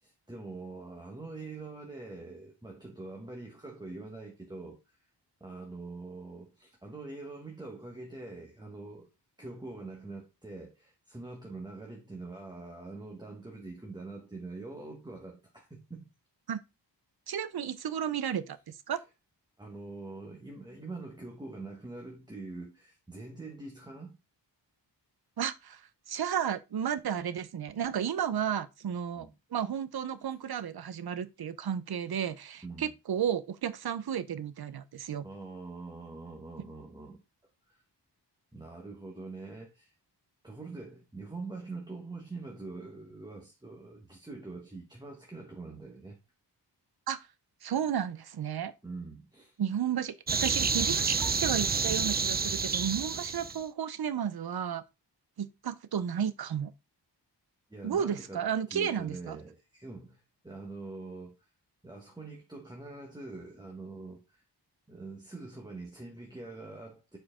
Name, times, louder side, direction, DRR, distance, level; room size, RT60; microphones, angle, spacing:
voice 1, 0.0-5.0 5.4-9.1 9.4-16.1 18.9-19.0 19.6-24.2 29.2-29.3 32.6-32.9 35.2-37.2 37.7-37.8 38.5-39.9 40.4-46.2 48.8-49.6 57.7-61.5 61.8-64.4 64.9-67.2, right 3 dB, 10° right, 1.2 m, -44 dB
voice 2, 17.3-19.0 25.4-35.3 47.1-47.2 47.6-48.7 49.6-54.8 55.4-56.7 57.8-59.4, right 8 dB, 60° right, 0.7 m, -33 dB
sound 1, 50.3-53.6, right 5 dB, 25° right, 0.3 m, -29 dB
7.5 x 4.5 x 3.7 m
wide cardioid pair, 165°, 42 cm